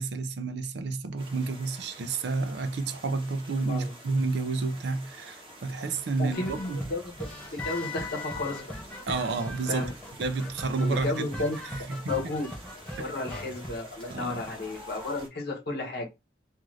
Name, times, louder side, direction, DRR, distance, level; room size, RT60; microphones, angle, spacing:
voice 1, 0.0-6.8 9.1-9.9 10.2-11.2 11.9-12.1 14.1-14.4, right 3 dB, 60° right, 0.4 m, -30 dB
sound 1, 1.2-15.3, right 1 dB, 25° right, 0.8 m, -49 dB
voice 2, 6.2-7.0 7.5-8.7 9.7-9.9 10.8-11.6 12.1-12.5 13.0-16.1, left 2 dB, 55° left, 0.8 m, -32 dB
sound 2, 6.3-15.2, left 2 dB, 5° left, 0.6 m, -40 dB
2.5 x 2.4 x 3.1 m
head